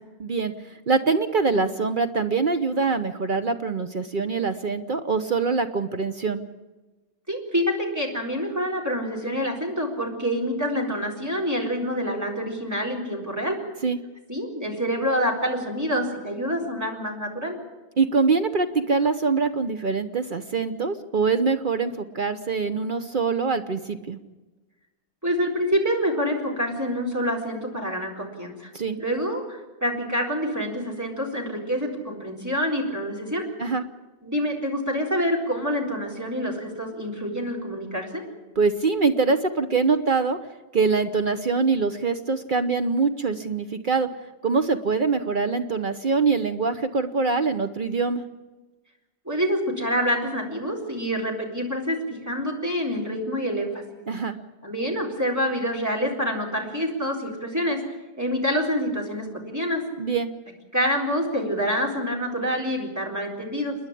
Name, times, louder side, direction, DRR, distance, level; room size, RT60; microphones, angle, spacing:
voice 1, 0.2-0.5 0.9-6.4 13.8-14.0 18.0-24.2 28.7-29.0 33.6-33.8 38.6-40.4 40.7-44.1 44.4-48.2 54.1-54.4 60.0-60.3, right 4 dB, 50° right, 9 dB, 1.0 m, -24 dB
voice 2, 7.3-13.6 14.3-17.5 25.2-28.7 29.0-33.5 34.2-38.2 49.3-53.8 54.6-57.8 58.2-59.8 60.7-63.8, equal, 15° right, -1 dB, 4.0 m, -27 dB
29.0 x 10.5 x 10.0 m, 1.2 s
omnidirectional pair, 1.2 m